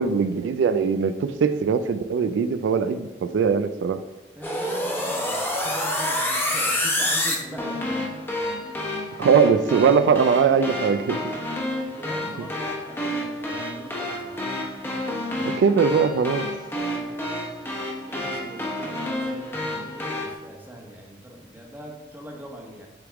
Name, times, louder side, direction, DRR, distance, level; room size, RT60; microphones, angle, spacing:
voice 1, 0.0-4.0 9.2-11.2 15.4-16.5, right 6 dB, 80° right, 10 dB, 0.3 m, -21 dB
sound 1, 4.4-20.3, left 1 dB, 15° left, 0.9 m, -29 dB
voice 2, 4.4-8.1 11.8-14.4 16.8-17.1 18.1-22.9, equal, 10° right, 0 dB, 1.0 m, -41 dB
7.8 x 3.5 x 3.6 m, 1.2 s
head